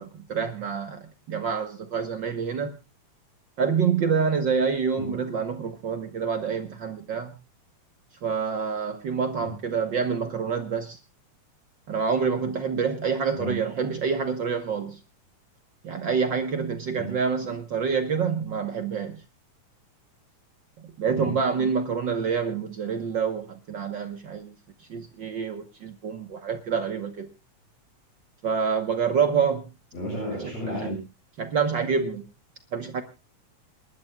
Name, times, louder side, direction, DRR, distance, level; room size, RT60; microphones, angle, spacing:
voice 1, 0.0-2.7 3.6-7.3 8.2-11.0 11.9-15.0 15.8-19.2 21.0-24.5 24.9-27.3 28.4-29.7 31.4-32.2 32.7-33.0, right 6 dB, 65° right, 8 dB, 1.1 m, -27 dB
voice 2, 29.9-31.0, right 1 dB, 60° left, -2 dB, 9.2 m, -32 dB
28.0 x 12.0 x 2.3 m, 0.27 s
omnidirectional pair, 3.6 m